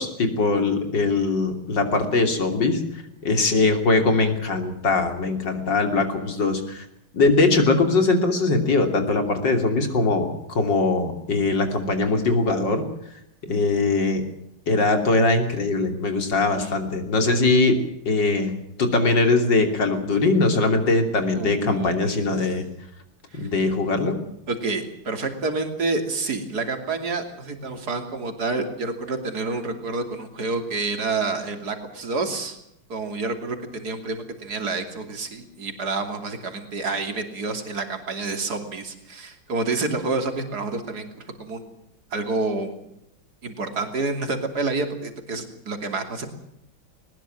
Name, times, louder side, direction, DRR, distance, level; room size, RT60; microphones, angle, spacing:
voice 1, 0.0-2.8 3.2-6.9 7.1-12.9 13.5-14.2 14.7-17.8 18.1-18.5 18.8-22.7 23.4-24.2, left 3 dB, 60° left, 6 dB, 3.7 m, -21 dB
voice 2, 21.3-22.5 23.3-23.5 24.5-32.6 32.9-41.7 42.1-42.7 43.4-46.3, right 3 dB, 50° right, 6 dB, 3.4 m, -28 dB
21.0 x 20.0 x 7.6 m, 0.77 s
omnidirectional pair, 2.2 m